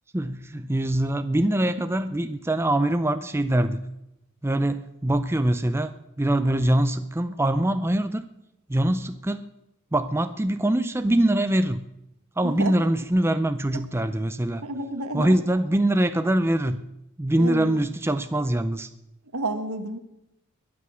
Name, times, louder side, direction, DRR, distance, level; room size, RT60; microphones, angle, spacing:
voice 1, 0.1-3.9 4.4-8.3 8.7-9.5 9.9-11.9 12.4-14.6 15.1-16.8 17.2-18.9, right 1 dB, 10° right, 10 dB, 0.5 m, -23 dB
voice 2, 14.6-15.3 17.4-17.7 19.3-20.0, right 2 dB, 75° right, 8 dB, 1.6 m, -30 dB
22.0 x 8.6 x 6.3 m, 0.87 s
head